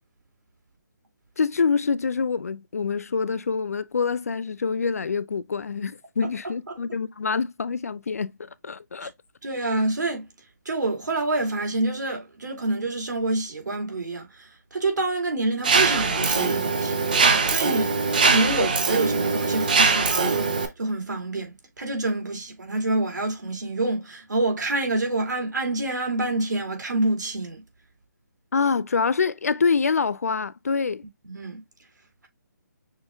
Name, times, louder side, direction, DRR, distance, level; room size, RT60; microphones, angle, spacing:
voice 1, 1.4-9.1 28.5-31.0, left 5 dB, 50° left, 0.3 m, -26 dB
voice 2, 9.4-10.3 10.7-27.6 31.2-31.6, right 2 dB, 70° right, 2.4 m, -27 dB
Mechanisms, 15.6-20.7, right 4 dB, 25° right, 0.6 m, -22 dB
6.3 x 2.1 x 3.4 m
hypercardioid pair, 175°, 10 cm